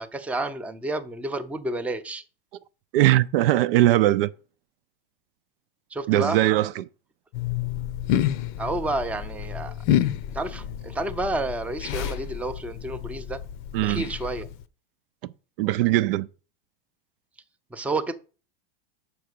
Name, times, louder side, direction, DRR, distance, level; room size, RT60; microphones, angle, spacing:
voice 1, 0.0-2.2 5.9-6.4 8.6-9.7 10.3-13.4 13.8-14.5 17.7-18.1, right 2 dB, 5° right, 0.5 m, -30 dB
voice 2, 2.9-4.3 6.1-6.9 13.7-14.0 15.6-16.3, right 15 dB, 70° right, 0.5 m, -20 dB
sound 1, 7.3-14.6, left 11 dB, 55° left, 0.7 m, -29 dB
5.9 x 4.8 x 6.6 m
supercardioid pair, 120°, 30 cm